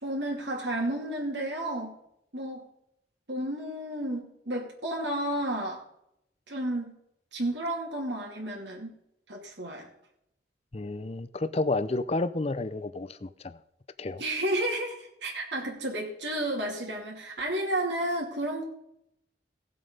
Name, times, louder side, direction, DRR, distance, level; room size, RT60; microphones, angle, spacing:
voice 1, 0.0-2.0 2.3-2.7 3.3-5.8 6.5-6.9 7.3-9.0 9.3-9.9 14.2-18.6, right 1 dB, 70° right, -1 dB, 2.5 m, -32 dB
voice 2, 10.7-13.6 14.0-14.2, left 2 dB, 35° left, 13 dB, 0.6 m, -31 dB
16.5 x 7.6 x 5.3 m, 0.77 s
head